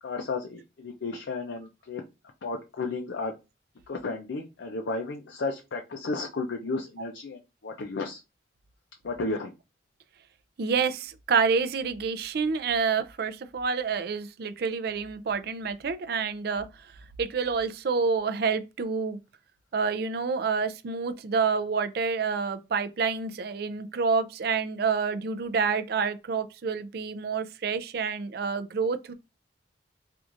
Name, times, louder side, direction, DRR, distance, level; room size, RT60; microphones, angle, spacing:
voice 1, 0.0-2.0 2.4-3.3 3.9-8.2 9.0-9.5, left 3 dB, 70° left, 0.5 m, -33 dB
voice 2, 10.6-16.9 17.2-19.2 19.7-29.1, right 5 dB, 55° right, 0.4 m, -28 dB
4.5 x 2.5 x 2.5 m
head